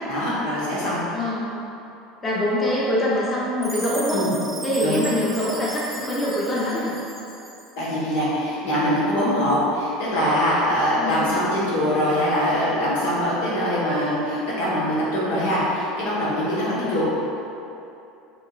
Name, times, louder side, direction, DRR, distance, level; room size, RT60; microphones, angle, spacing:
voice 1, 0.1-1.0 4.1-4.3 4.8-5.0 7.7-17.0, equal, 65° left, -8 dB, 1.0 m, -23 dB
voice 2, 1.1-1.5 2.2-4.3 4.6-6.9 10.9-11.3 16.7-17.0, left 1 dB, 30° left, -7 dB, 1.1 m, -24 dB
Chime, 3.6-7.9, right 3 dB, 20° right, 0.6 m, -37 dB
5.4 x 3.3 x 2.3 m, 2.8 s
figure-of-eight pair, 70°, 0 cm